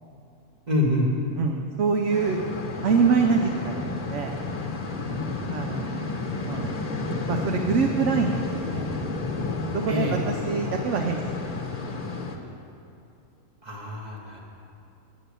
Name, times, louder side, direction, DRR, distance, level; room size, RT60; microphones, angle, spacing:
voice 1, 0.7-1.1 9.9-10.2 13.6-14.4, left 1 dB, 30° right, -3 dB, 2.0 m, -25 dB
voice 2, 1.4-2.4 2.8-4.4 5.5-6.1 6.4-6.7 7.3-8.9 9.7-11.3 11.9-12.0, right 5 dB, 65° right, 4 dB, 0.9 m, -25 dB
sound 1, 2.1-12.4, left 3 dB, 35° left, 0.9 m, -31 dB
9.3 x 7.6 x 8.3 m, 2.6 s
omnidirectional pair, 1.5 m